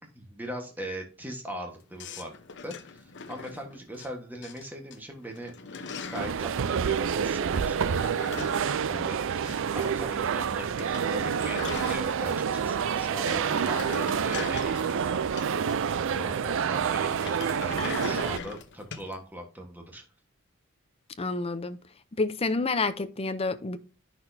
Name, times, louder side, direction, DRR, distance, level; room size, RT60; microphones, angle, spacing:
voice 1, 0.1-2.3 2.6-8.6 8.9-15.3 16.1-20.0, equal, 10° right, 1.3 m, -40 dB
sound 1, 2.0-4.1 4.4-5.0 5.2-6.4 7.7-9.9 10.1-10.2 10.5-10.6 10.8-12.5 12.9-16.0 17.1-19.1, left 5 dB, 55° left, 0.9 m, -40 dB
sound 2, 6.1-18.4, right 7 dB, 60° right, 0.4 m, -28 dB
voice 2, 21.2-21.8 22.2-23.8, left 3 dB, 25° left, 0.6 m, -28 dB
10.5 x 6.0 x 2.7 m
head